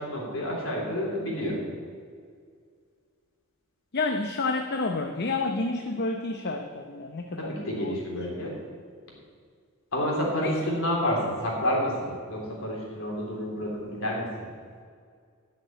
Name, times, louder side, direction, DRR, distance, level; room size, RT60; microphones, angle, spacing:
voice 1, 0.0-1.6 7.4-8.6 9.9-14.5, equal, 70° left, -2 dB, 3.5 m, -29 dB
voice 2, 3.9-8.0 10.4-10.5, left 3 dB, 55° left, 5 dB, 0.7 m, -30 dB
12.0 x 6.0 x 9.2 m, 2.1 s
head